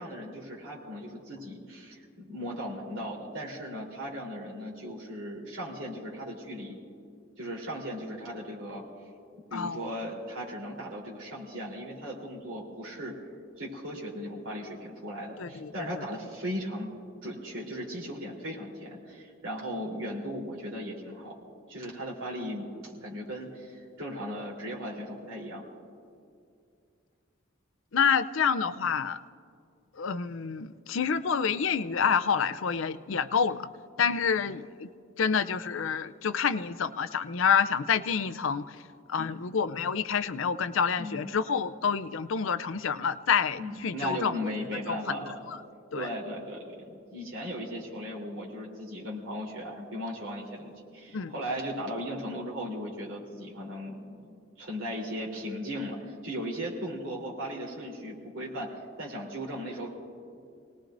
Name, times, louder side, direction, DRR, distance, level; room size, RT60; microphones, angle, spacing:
voice 1, 0.0-6.8 7.4-8.8 9.5-13.1 13.6-16.9 17.2-21.3 21.7-25.6 39.2-39.3 41.0-41.3 43.6-45.4 45.9-58.7 59.0-59.9, equal, 65° right, -4 dB, 3.6 m, -37 dB
voice 2, 9.5-9.8 15.4-16.1 27.9-29.2 29.9-33.7 34.0-34.9 35.2-38.8 39.1-44.5 44.9-45.6 45.9-46.1 51.1-51.3, left 6 dB, 70° left, 12 dB, 0.5 m, -28 dB
28.0 x 19.0 x 2.6 m, 2.4 s
head